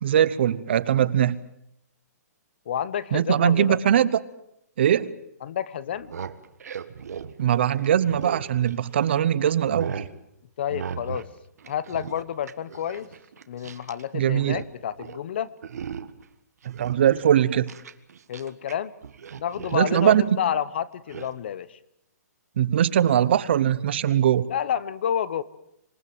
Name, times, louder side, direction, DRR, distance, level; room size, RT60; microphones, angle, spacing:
voice 1, 0.0-1.4 3.1-4.2 4.8-5.1 7.4-10.0 14.1-14.6 16.6-17.7 19.7-20.4 22.6-24.5, right 10 dB, 40° right, 18 dB, 0.8 m, -21 dB
voice 2, 2.7-3.8 5.4-6.1 10.6-11.3 11.7-13.1 13.5-15.5 18.3-18.9 19.4-21.8 24.4-25.4, left 9 dB, 40° left, 19 dB, 0.9 m, -29 dB
sound 1, 5.9-9.1 9.5-10.1 10.7-11.3 11.6-14.0 14.3-14.7 15.0-15.2 15.6-16.2 16.6-18.7 19.0-20.3 21.1-21.3, right 7 dB, 65° right, 1.6 m, -37 dB
26.5 x 19.5 x 7.8 m, 0.80 s
hypercardioid pair, 175°, 9 cm